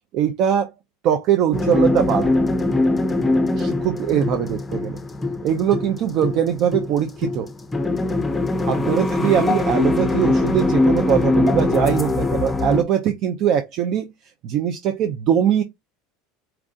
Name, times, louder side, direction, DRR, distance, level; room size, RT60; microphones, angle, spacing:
voice 1, 0.1-0.7 1.0-2.3 3.6-5.0 5.4-7.5 8.7-14.1 14.4-15.6, right 9 dB, 50° right, 0.6 m, -21 dB
sound 1, 1.5-12.8, left 2 dB, 10° left, 0.7 m, -21 dB
4.6 x 2.5 x 3.6 m
supercardioid pair, 130°, 0 cm